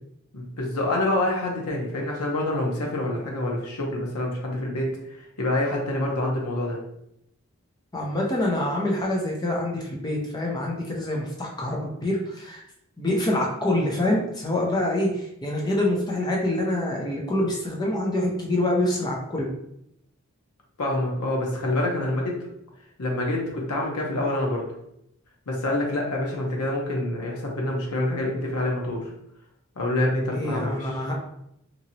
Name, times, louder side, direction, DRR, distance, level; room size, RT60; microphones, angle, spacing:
voice 1, 0.3-6.8 20.8-22.5 23.0-24.6 25.5-29.1 29.8-30.9, left 1 dB, 85° left, -1 dB, 0.8 m, -27 dB
voice 2, 7.9-12.6 13.0-19.5 30.3-31.1, left 1 dB, 20° left, -2 dB, 0.5 m, -26 dB
2.9 x 2.7 x 2.7 m, 0.78 s
head